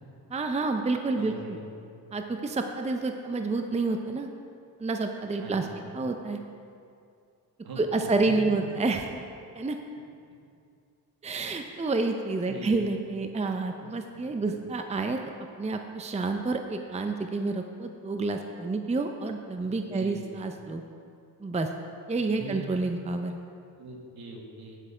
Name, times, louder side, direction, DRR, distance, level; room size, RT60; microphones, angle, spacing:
voice 1, 0.3-1.6 2.1-4.3 4.8-5.7 5.9-6.4 7.8-9.1 9.5-9.8 11.2-15.2 15.6-20.8 21.4-21.7 22.1-23.3, right 3 dB, 15° right, 5 dB, 0.6 m, -29 dB
voice 2, 1.2-1.7 5.4-5.7 7.6-8.1 8.5-8.6 12.5-12.9 13.8-14.5 19.8-20.2 22.2-22.7 23.8-24.8, right 3 dB, 65° right, 0 dB, 2.0 m, -42 dB
9.3 x 8.2 x 5.0 m, 2.4 s
cardioid pair, 70°, 39 cm